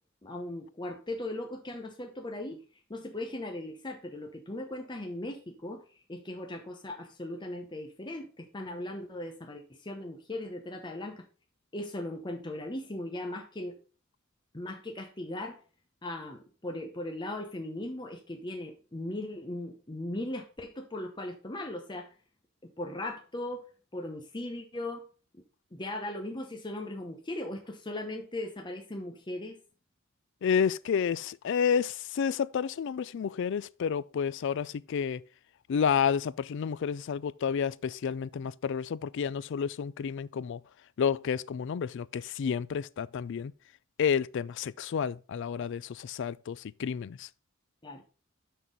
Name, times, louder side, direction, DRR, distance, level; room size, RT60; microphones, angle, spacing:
voice 1, 0.2-2.6 2.9-11.2 11.7-13.8 14.5-15.6 16.0-22.1 22.6-23.6 23.9-25.0 25.7-29.6 47.8-48.0, left 1 dB, 20° left, 0.9 m, -38 dB
voice 2, 30.4-35.2 35.7-40.6 41.0-43.5 44.0-47.3, left 7 dB, 60° left, 0.3 m, -30 dB
6.2 x 6.1 x 5.3 m
head